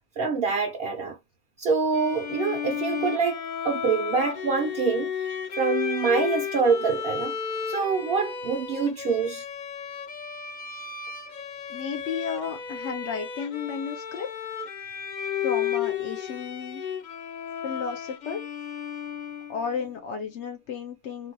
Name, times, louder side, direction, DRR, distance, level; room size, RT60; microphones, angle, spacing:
voice 1, 0.2-1.2 1.6-5.1 5.6-7.3 7.7-9.4, right 5 dB, 65° right, 0.8 m, -25 dB
Bowed string instrument, 1.9-19.8, left 8 dB, 50° left, 0.6 m, -33 dB
voice 2, 11.7-14.3 15.4-16.8 17.6-18.4 19.5-21.3, left 6 dB, 80° left, 0.9 m, -33 dB
3.2 x 2.2 x 2.7 m
omnidirectional pair, 1.2 m